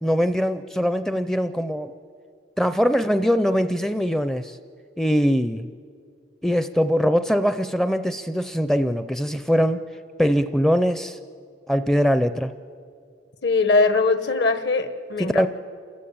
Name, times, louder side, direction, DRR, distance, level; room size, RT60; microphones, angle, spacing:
voice 1, 0.0-1.9 2.6-4.6 5.0-5.7 6.4-9.8 10.2-11.2 11.7-12.5 15.2-15.5, equal, ahead, 0.5 m, -22 dB
voice 2, 13.4-15.5, left 3 dB, 60° left, 1.3 m, -21 dB
28.0 x 14.5 x 8.8 m
head